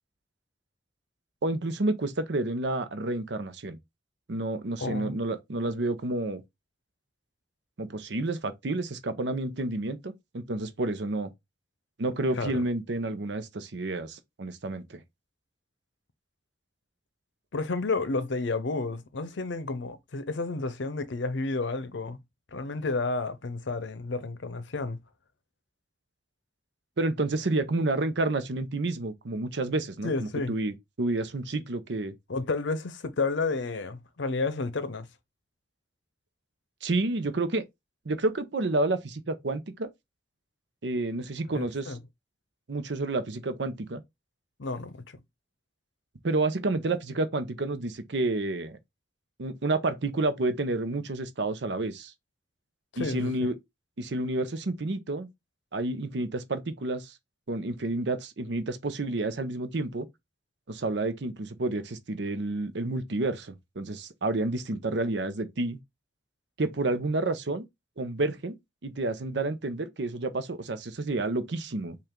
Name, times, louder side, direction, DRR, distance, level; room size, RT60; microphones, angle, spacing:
voice 1, 1.4-3.8 4.3-6.4 7.8-11.3 12.0-15.0 27.0-32.1 36.8-37.6 38.1-39.9 40.8-42.0 42.7-44.0 46.2-48.8 49.4-52.1 53.0-53.6 54.0-55.3 55.7-57.1 57.5-60.1 60.7-65.8 66.6-67.6 68.0-68.5 68.8-72.0, right 2 dB, 65° right, 0.7 m, -30 dB
voice 2, 4.8-5.2 12.3-12.6 17.5-22.2 22.5-25.0 30.0-30.6 32.3-35.1 41.5-42.0 44.6-45.0 52.9-53.5, left 3 dB, 75° left, 0.6 m, -31 dB
5.6 x 2.4 x 3.7 m
head